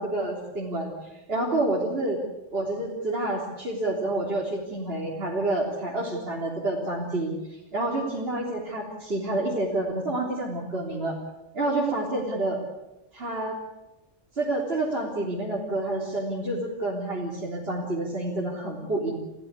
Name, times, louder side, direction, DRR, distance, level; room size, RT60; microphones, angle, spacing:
voice 1, 0.0-2.2 2.5-7.3 7.7-11.2 11.5-12.6 13.1-13.6 14.4-19.1, right 2 dB, 55° right, -4 dB, 3.9 m, -28 dB
29.5 x 15.5 x 8.3 m, 1.0 s
omnidirectional pair, 1.2 m